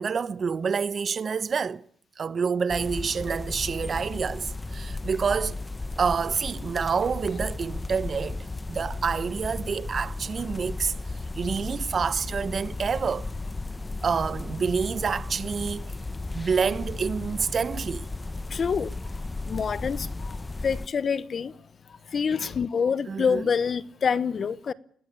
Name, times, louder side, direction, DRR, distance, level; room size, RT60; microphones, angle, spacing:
voice 1, 0.0-1.8 2.2-5.6 6.0-10.9 11.3-13.3 14.0-15.9 16.3-18.1 23.1-23.5, right 6 dB, 45° right, 0.9 m, -28 dB
sound 1, 2.7-20.9, left 2 dB, 20° left, 1.1 m, -35 dB
voice 2, 18.5-18.9 19.4-20.4 20.6-21.5 22.1-24.7, left 6 dB, 45° left, 0.9 m, -26 dB
21.0 x 17.5 x 8.6 m
cardioid pair, 90°, 0 cm